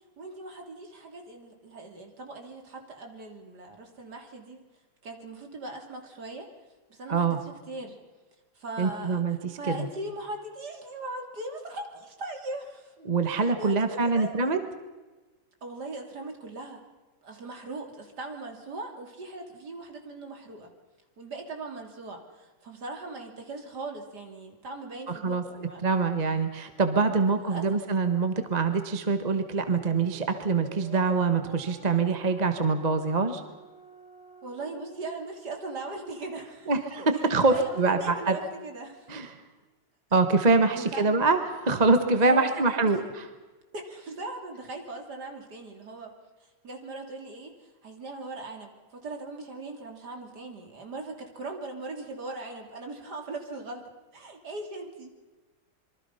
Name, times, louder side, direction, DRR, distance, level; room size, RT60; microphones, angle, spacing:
voice 1, 0.2-4.6 5.0-6.5 6.9-8.0 8.5-9.2 9.6-12.9 13.3-14.5 15.6-16.8 17.2-20.7 21.2-25.8 27.2-27.8 34.4-36.7 37.1-39.1 40.7-41.2 42.2-43.1 43.7-46.1 46.4-53.8 54.1-55.1, right 2 dB, 55° right, 3 dB, 3.4 m, -39 dB
voice 2, 7.1-7.4 8.8-9.9 13.0-14.6 25.1-25.4 25.8-33.4 36.7-38.4 39.1-39.4 40.1-43.2, right 4 dB, 25° right, 8 dB, 1.2 m, -25 dB
sound 1, 29.6-36.1, equal, 25° left, 3.0 m, -50 dB
26.5 x 23.5 x 5.7 m, 1.2 s
omnidirectional pair, 2.2 m